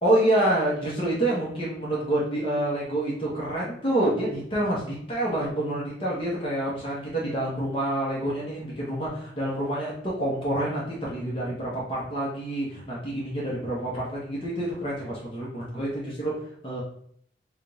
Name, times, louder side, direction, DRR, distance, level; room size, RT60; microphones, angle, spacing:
voice 1, 0.0-16.3 16.6-16.8, right 1 dB, 30° left, -6 dB, 0.9 m, -27 dB
3.6 x 2.3 x 3.9 m, 0.65 s
head